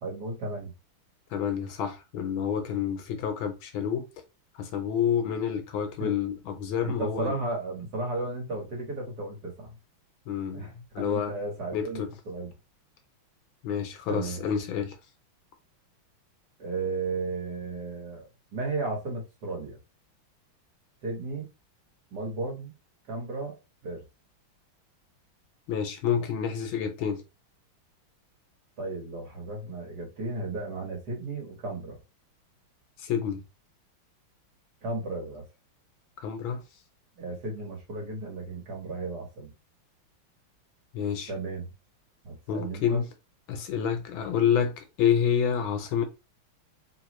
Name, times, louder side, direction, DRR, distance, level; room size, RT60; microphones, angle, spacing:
voice 1, 0.0-0.7 6.0-6.1 6.8-9.8 10.5-12.5 14.1-14.4 16.6-18.3 18.5-19.8 21.0-21.5 22.1-22.7 23.1-23.6 23.8-24.0 28.8-32.0 34.8-35.4 37.2-39.5 41.3-41.7 42.2-43.1, right 2 dB, 50° right, 1.9 m, -34 dB
voice 2, 1.3-4.1 4.6-7.3 10.3-11.3 11.7-12.1 13.6-15.0 25.7-27.2 33.0-33.4 36.2-36.6 40.9-41.3 42.5-43.1 43.5-46.0, left 8 dB, 75° left, 1.5 m, -28 dB
3.7 x 3.1 x 3.1 m
omnidirectional pair, 2.3 m